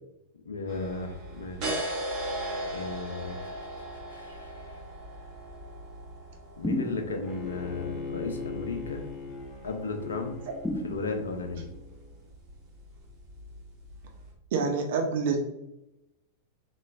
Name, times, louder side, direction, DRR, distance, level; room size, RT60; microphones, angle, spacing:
voice 1, 0.4-1.8 2.7-3.5 3.9-4.8 6.6-9.1 9.6-10.4 10.8-11.6, left 3 dB, 70° left, 5 dB, 0.6 m, -35 dB
sound 1, 0.7-14.3, right 1 dB, 40° right, 1.1 m, -39 dB
sound 2, 6.6-7.5 10.6-11.6, left 1 dB, 5° left, 0.3 m, -33 dB
Bowed string instrument, 7.2-12.3, left 5 dB, 30° left, 0.8 m, -40 dB
voice 2, 14.5-15.4, right 5 dB, 55° right, 2 dB, 0.5 m, -26 dB
3.8 x 3.1 x 2.4 m, 0.87 s
figure-of-eight pair, 90°, 0 cm